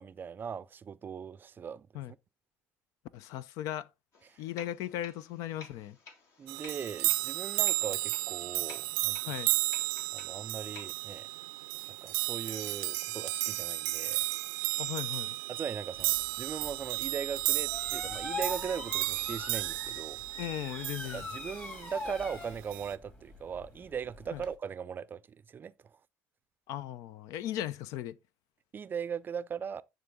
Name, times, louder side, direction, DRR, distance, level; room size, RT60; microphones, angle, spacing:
voice 1, 0.0-1.9 4.3-4.4 6.4-9.2 10.1-11.3 11.9-14.2 15.5-20.2 21.1-26.0 28.7-29.8, right 7 dB, 35° right, 0.4 m, -39 dB
voice 2, 3.1-3.9 4.4-6.0 9.2-9.5 14.8-15.4 20.4-21.2 24.3-24.4 26.7-28.2, left 12 dB, 75° left, 0.4 m, -37 dB
sound 1, 4.1-10.9, left 4 dB, 60° left, 2.0 m, -53 dB
sound 2, 6.5-21.5 22.7-22.9, right 20 dB, 90° right, 0.5 m, -33 dB
sound 3, 16.0-24.5, left 3 dB, 30° left, 2.3 m, -43 dB
9.3 x 3.8 x 3.7 m
supercardioid pair, 90°, 6 cm